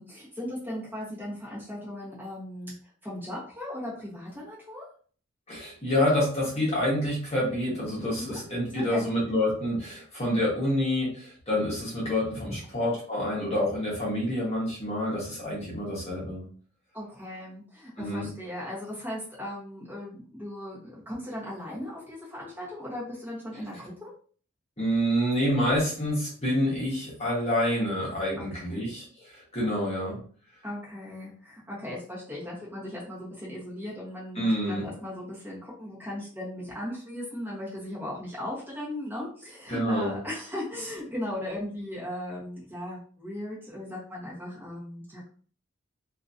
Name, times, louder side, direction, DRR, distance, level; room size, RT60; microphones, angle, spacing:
voice 1, 0.0-2.7 3.0-4.8 8.3-8.4 8.7-9.0 16.9-24.1 28.4-28.8 30.6-45.3, left 1 dB, 10° right, -7 dB, 1.1 m, -37 dB
voice 2, 5.5-16.4 18.0-18.3 24.8-30.2 34.4-34.8 39.7-40.2, left 1 dB, 30° left, -5 dB, 1.1 m, -27 dB
2.9 x 2.5 x 2.6 m, 0.44 s
head